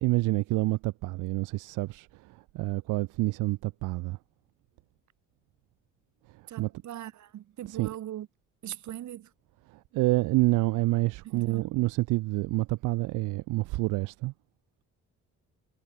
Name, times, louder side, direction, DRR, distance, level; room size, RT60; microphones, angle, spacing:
voice 1, 0.0-4.2 6.3-6.7 7.7-7.9 9.7-14.3, right 20 dB, 90° right, 0.5 m, -28 dB
voice 2, 6.5-8.3 8.6-9.3 11.2-11.7, right 12 dB, 70° right, 1.7 m, -40 dB
cardioid pair, 90°, 30 cm